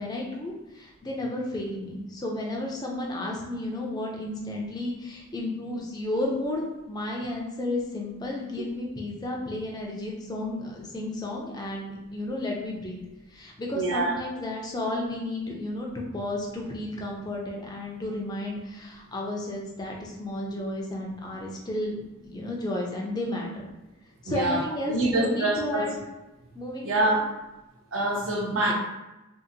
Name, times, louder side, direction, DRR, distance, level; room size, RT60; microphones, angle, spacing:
voice 1, 0.0-13.0 13.3-23.7 24.2-25.9 26.5-27.1 28.6-28.7, left 1 dB, 20° left, -2 dB, 0.4 m, -32 dB
voice 2, 13.7-14.1 24.2-25.9 26.8-27.3 27.9-28.7, right 2 dB, 60° right, 0 dB, 0.6 m, -26 dB
2.7 x 2.5 x 2.6 m, 1.0 s
head